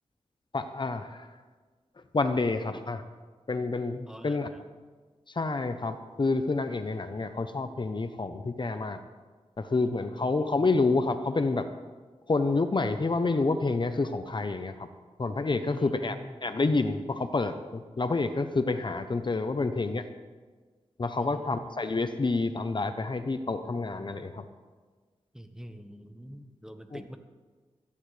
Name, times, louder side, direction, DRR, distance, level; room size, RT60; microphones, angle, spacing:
voice 1, 0.5-1.3 2.1-3.0 3.5-4.5 5.3-9.0 9.6-11.7 12.3-14.9 15.2-20.1 21.0-24.4 26.9-27.0, left 3 dB, 45° left, 9 dB, 0.8 m, -28 dB
voice 2, 4.1-4.7 10.1-10.5 15.6-16.3 21.2-21.7 25.3-27.2, equal, 5° right, 7 dB, 1.2 m, -45 dB
17.0 x 14.5 x 3.4 m, 1.4 s
cardioid pair, 65°, 11 cm